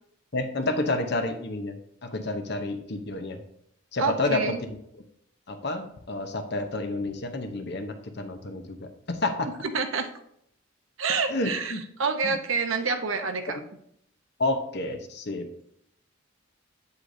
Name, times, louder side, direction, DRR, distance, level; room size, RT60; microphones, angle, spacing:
voice 1, 0.3-1.8 2.0-3.4 3.9-4.4 5.5-9.5 11.3-11.8 12.2-12.4 14.4-15.5, left 2 dB, 55° left, 6 dB, 0.8 m, -29 dB
voice 2, 4.0-4.6 9.6-10.1 11.0-13.6, right 5 dB, 70° right, 6 dB, 0.9 m, -28 dB
8.3 x 8.0 x 2.7 m, 0.72 s
head